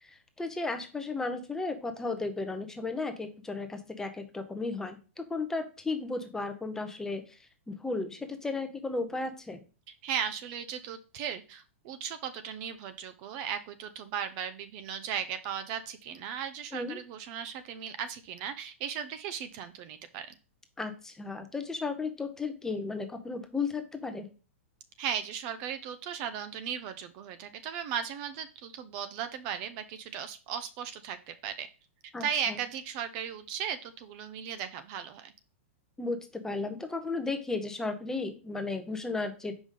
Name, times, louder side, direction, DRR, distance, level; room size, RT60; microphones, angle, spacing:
voice 1, 0.0-7.4 7.7-9.6 16.7-17.0 20.8-24.3 32.1-32.6 36.0-39.6, left 3 dB, 5° left, 7 dB, 0.7 m, -34 dB
voice 2, 9.9-20.3 25.0-31.7 32.2-35.3, right 8 dB, 40° right, 10 dB, 0.6 m, -36 dB
5.1 x 5.0 x 3.7 m, 0.34 s
hypercardioid pair, 135°, 7 cm